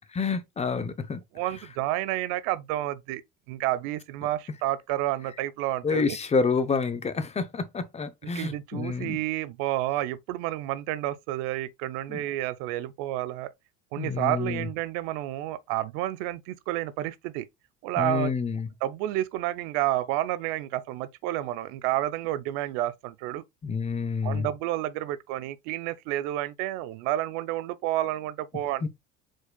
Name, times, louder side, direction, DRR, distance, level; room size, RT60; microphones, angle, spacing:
voice 1, 0.1-1.2 5.8-9.2 12.1-12.2 14.0-14.7 18.0-18.7 23.6-24.5 28.8-28.9, left 5 dB, 20° left, 0.6 m, -28 dB
voice 2, 1.4-3.2 3.5-6.2 8.3-13.5 13.9-17.5 17.8-18.3 18.8-23.4 24.2-28.9, right 14 dB, 75° right, 0.5 m, -30 dB
4.6 x 4.3 x 2.2 m
supercardioid pair, 95°, 31 cm